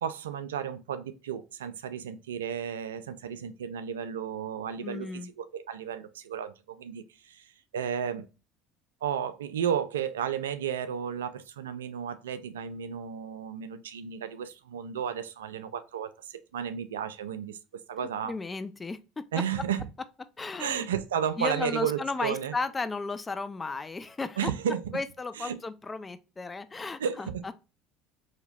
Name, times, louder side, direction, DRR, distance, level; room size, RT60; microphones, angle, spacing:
voice 1, 0.0-5.1 5.4-7.4 7.7-8.3 9.0-17.6 17.9-18.3 19.3-19.8 20.6-22.5 24.4-24.8 25.4-25.6 27.0-27.4, right 8 dB, 85° right, 0.4 m, -33 dB
voice 2, 4.8-5.3 18.2-19.2 20.4-20.9 21.4-24.5 24.9-27.5, left 3 dB, 20° left, 0.4 m, -34 dB
4.1 x 2.9 x 2.3 m
hypercardioid pair, 70°, 0 cm